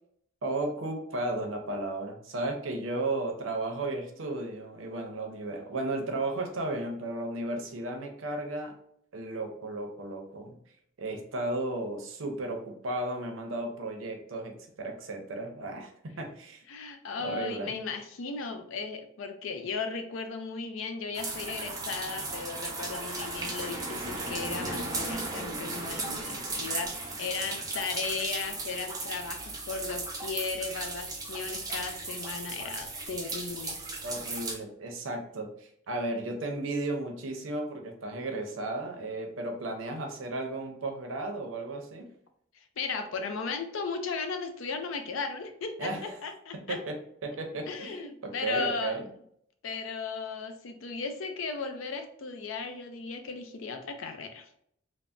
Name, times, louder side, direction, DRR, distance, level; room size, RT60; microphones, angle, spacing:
voice 1, 0.4-8.7 9.1-10.6 11.0-16.6 17.2-17.7 34.0-42.1 45.8-46.2 46.7-47.0 47.2-49.0, right 2 dB, 80° right, 3 dB, 0.6 m, -34 dB
voice 2, 16.7-33.8 42.5-46.8 47.7-49.0 49.6-54.5, left 4 dB, 85° left, 6 dB, 0.5 m, -36 dB
sound 1, 21.1-34.6, right 2 dB, 20° right, 0.5 m, -36 dB
3.3 x 2.0 x 2.5 m, 0.68 s
head